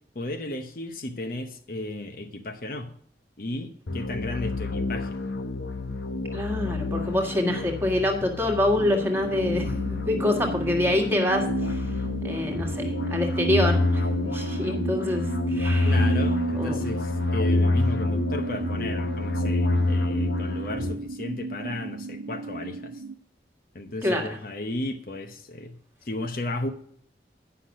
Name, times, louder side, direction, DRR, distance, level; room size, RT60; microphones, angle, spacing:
voice 1, 0.1-2.9 3.4-5.2 15.8-23.0 23.7-26.7, left 1 dB, 50° left, 0.8 m, -34 dB
sound 1, 3.9-20.9, left 2 dB, 90° left, 0.9 m, -27 dB
voice 2, 6.3-9.6 10.1-11.8 12.2-14.0 14.3-16.0 16.6-16.8 24.0-24.3, left 1 dB, 15° right, 1.6 m, -26 dB
sound 2, 9.0-23.1, right 3 dB, 85° right, 0.4 m, -34 dB
9.9 x 5.9 x 6.2 m
head